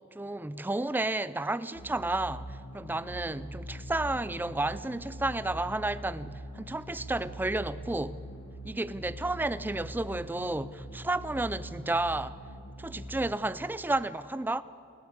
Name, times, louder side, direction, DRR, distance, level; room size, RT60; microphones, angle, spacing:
voice 1, 0.1-8.2 8.6-12.4 12.8-14.6, right 2 dB, 10° right, 0.4 m, -32 dB
sound 1, 1.7-13.3, equal, 85° left, 2.5 m, -43 dB
29.5 x 10.5 x 8.4 m
head